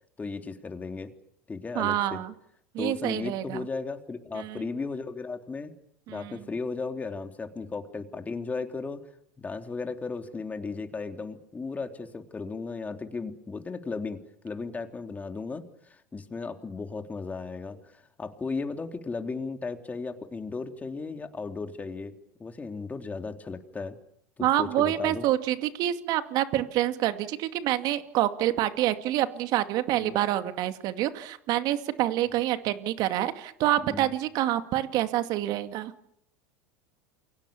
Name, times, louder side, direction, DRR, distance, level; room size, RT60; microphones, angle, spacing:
voice 1, 0.2-1.1 1.5-2.2 2.8-5.7 6.1-9.0 9.4-24.0 24.4-25.3 30.0-30.2 33.8-34.1, left 4 dB, 20° left, 5 dB, 3.4 m, -35 dB
voice 2, 1.7-2.3 2.7-3.6 4.4-4.6 6.1-6.4 24.4-35.9, right 13 dB, 55° right, 9 dB, 2.3 m, -27 dB
29.0 x 23.5 x 7.2 m, 0.75 s
hypercardioid pair, 90°, 8 cm